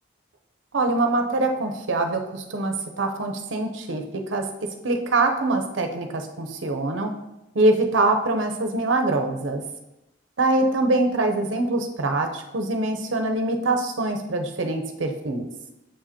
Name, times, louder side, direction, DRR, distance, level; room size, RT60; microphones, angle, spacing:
voice 1, 0.7-4.0 4.3-7.1 7.5-9.6 10.4-15.4, right 2 dB, 80° right, 5 dB, 0.7 m, -24 dB
7.2 x 5.0 x 2.9 m, 0.90 s
head